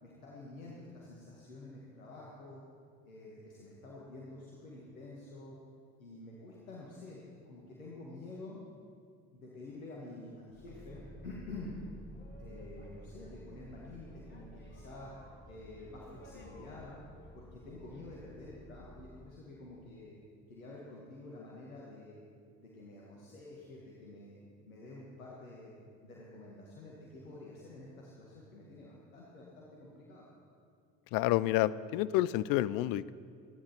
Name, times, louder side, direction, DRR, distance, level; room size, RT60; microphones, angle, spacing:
voice 1, 0.0-2.6 3.1-5.6 6.0-8.6 9.3-11.8 12.4-17.0 17.3-20.2 20.5-22.2 22.6-24.4 24.7-25.7 26.0-30.3, left 2 dB, 85° left, -4 dB, 1.8 m, -49 dB
Boat Water vehicle, 10.5-19.3, equal, 25° left, 3.0 m, -52 dB
voice 2, 31.1-33.1, left 15 dB, 60° left, 18 dB, 0.5 m, -29 dB
25.5 x 10.5 x 4.4 m, 2.2 s
hypercardioid pair, 55°, 40 cm